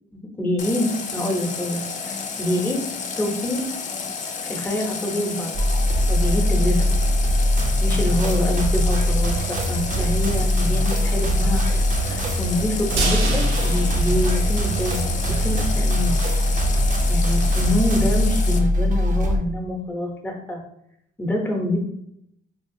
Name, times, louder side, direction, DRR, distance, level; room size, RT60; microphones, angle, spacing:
voice 1, 0.1-2.8 3.2-3.6 4.4-5.5 6.1-6.9 7.8-15.0 15.4-16.2 17.1-20.6 21.2-21.8, left 1 dB, 10° left, 1 dB, 0.8 m, -26 dB
Water tap faucet, 0.6-18.6, left 5 dB, 40° left, 0.4 m, -31 dB
sound 1, 5.5-19.4, equal, 40° right, 0.5 m, -21 dB
sound 2, 13.0-15.1 15.4-15.5 15.9-16.0, right 3 dB, 85° right, 0.7 m, -29 dB
3.4 x 2.4 x 2.6 m, 0.75 s
cardioid pair, 90°, 20 cm